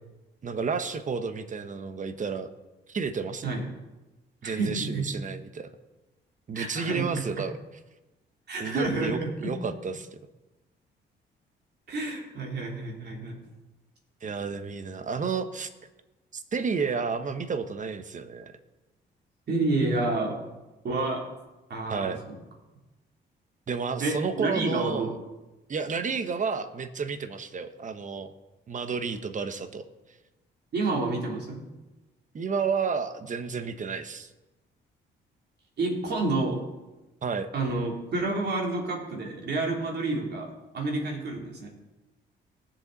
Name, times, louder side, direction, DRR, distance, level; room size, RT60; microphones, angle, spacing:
voice 1, 0.4-2.5 2.9-3.6 4.4-5.7 6.5-7.5 8.6-10.1 14.2-15.7 16.3-18.6 21.9-22.2 23.7-25.2 25.7-28.3 28.7-29.8 32.3-34.3 37.2-37.5, right 5 dB, 40° right, 10 dB, 1.1 m, -31 dB
voice 2, 4.4-5.2 6.5-7.2 8.5-9.6 11.9-13.4 19.5-20.4 20.8-21.3 21.7-22.4 24.0-25.1 30.7-31.6 35.8-36.6 37.5-41.7, right 2 dB, 55° right, 0 dB, 3.4 m, -29 dB
19.0 x 7.3 x 4.1 m, 1.1 s
cardioid pair, 90°, 20 cm